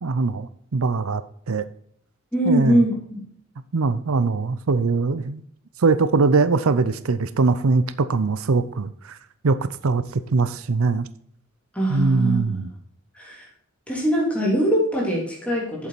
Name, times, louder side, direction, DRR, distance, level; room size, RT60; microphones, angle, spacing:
voice 1, 0.0-1.7 2.5-2.8 3.7-5.4 5.8-9.2 9.4-9.6 9.8-11.1 11.9-12.7, right 4 dB, 85° right, 14 dB, 0.6 m, -22 dB
voice 2, 2.3-3.2 11.7-12.7 13.1-13.4 13.9-15.9, right 1 dB, 5° left, -3 dB, 3.2 m, -22 dB
8.4 x 7.5 x 4.1 m, 0.63 s
head